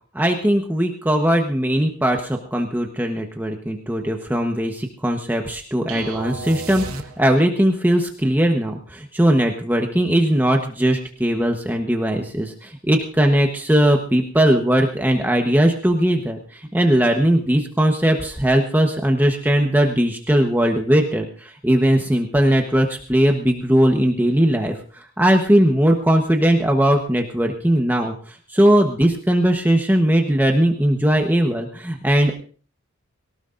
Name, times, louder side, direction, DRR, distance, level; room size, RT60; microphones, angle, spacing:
voice 1, 0.1-6.8 7.2-32.3, right 1 dB, 10° right, 2 dB, 1.1 m, -19 dB
sound 1, 5.9-7.6, right 3 dB, 75° right, 1.4 m, -33 dB
22.5 x 18.5 x 2.6 m, 0.41 s
head